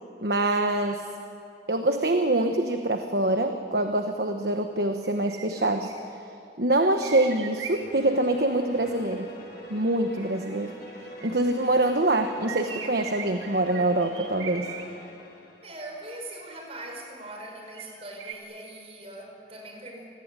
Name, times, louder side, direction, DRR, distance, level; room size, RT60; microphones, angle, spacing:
voice 1, 0.2-1.0 1.7-5.9 6.6-9.3 9.7-10.7 11.2-14.7, right 2 dB, 60° right, 5 dB, 1.3 m, -25 dB
sound 1, 5.0-6.1 6.8-8.3 10.1-11.5 12.3-14.8 16.3-16.9 17.7-18.3, right 7 dB, 85° right, 2.2 m, -40 dB
sound 2, 7.5-16.1, left 1 dB, 55° left, 6.4 m, -46 dB
voice 2, 15.6-20.1, right 1 dB, 35° right, 2 dB, 5.3 m, -41 dB
28.0 x 20.0 x 9.2 m, 2.6 s
head